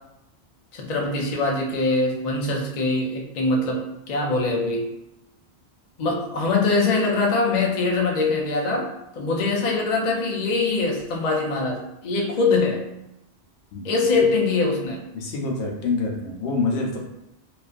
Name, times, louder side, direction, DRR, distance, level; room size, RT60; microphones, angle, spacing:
voice 1, 0.7-4.9 6.0-12.8 13.8-15.0, left 3 dB, 55° left, -1 dB, 0.5 m, -23 dB
voice 2, 15.1-17.0, left 3 dB, 80° left, 0 dB, 0.9 m, -26 dB
2.4 x 2.3 x 2.3 m, 0.86 s
omnidirectional pair, 1.1 m